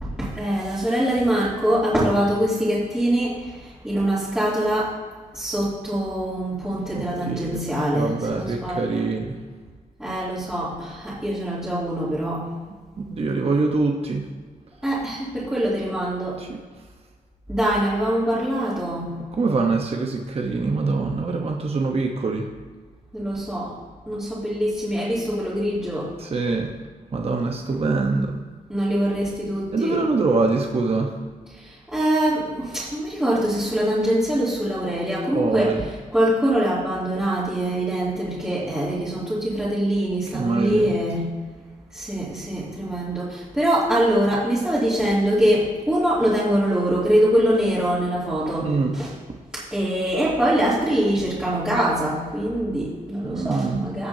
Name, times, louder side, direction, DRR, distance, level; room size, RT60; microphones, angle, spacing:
voice 1, 0.0-4.9 5.3-9.1 10.0-12.5 14.8-16.4 17.5-19.2 23.1-23.7 24.1-26.1 27.7-27.8 28.7-30.0 31.6-41.3 41.9-49.1 49.5-54.1, right 1 dB, 5° right, -12 dB, 2.8 m, -23 dB
voice 2, 6.9-7.6 7.9-9.4 13.1-14.2 16.4-16.6 19.4-22.4 26.2-26.7 27.1-28.3 29.7-31.1 35.3-35.8 40.3-40.9 48.6-49.0 53.2-53.8, right 3 dB, 45° right, 2 dB, 1.0 m, -24 dB
16.5 x 5.9 x 2.8 m, 1.4 s
cardioid pair, 95°, 15 cm